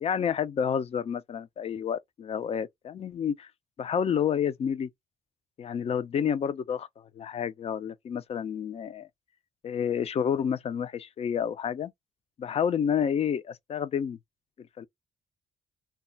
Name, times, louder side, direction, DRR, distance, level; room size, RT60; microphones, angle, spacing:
voice 1, 0.0-3.5 3.8-4.9 5.6-9.1 9.6-11.9 12.4-14.2 14.6-14.9, left 8 dB, 50° left, 0.5 m, -29 dB
2.3 x 2.0 x 3.8 m
cardioid pair, 90°, 13 cm